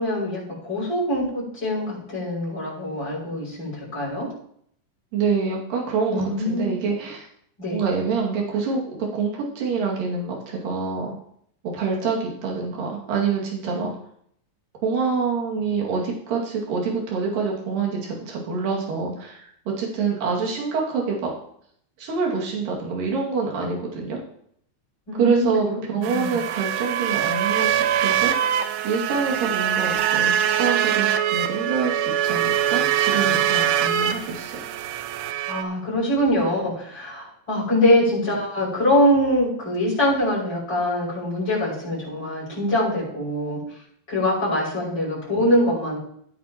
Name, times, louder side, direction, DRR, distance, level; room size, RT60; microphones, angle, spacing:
voice 1, 0.0-4.3 6.1-6.7 7.6-7.8 13.7-13.8 25.1-26.4 35.2-43.6 44.1-46.0, left 1 dB, 30° left, -7 dB, 6.8 m, -23 dB
voice 2, 5.1-7.3 7.7-8.8 9.1-11.2 11.6-13.9 14.8-19.4 19.7-21.3 22.0-24.2 25.2-27.7 28.0-34.6, right 5 dB, 70° right, -3 dB, 3.9 m, -26 dB
sound 1, 26.0-35.6, right 10 dB, 85° right, 2.5 m, -23 dB
17.5 x 9.4 x 3.0 m, 0.67 s
omnidirectional pair, 4.1 m